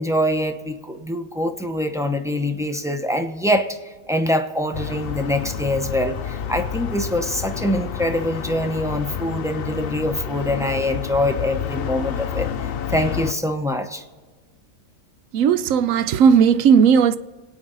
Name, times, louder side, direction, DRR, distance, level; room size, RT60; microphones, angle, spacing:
voice 1, 0.0-12.5 12.9-14.0, left 1 dB, 5° right, 0.5 m, -24 dB
sound 1, 4.7-13.3, left 8 dB, 70° left, 0.5 m, -29 dB
voice 2, 15.3-17.2, right 7 dB, 65° right, 0.9 m, -15 dB
26.5 x 9.2 x 4.0 m
omnidirectional pair, 1.6 m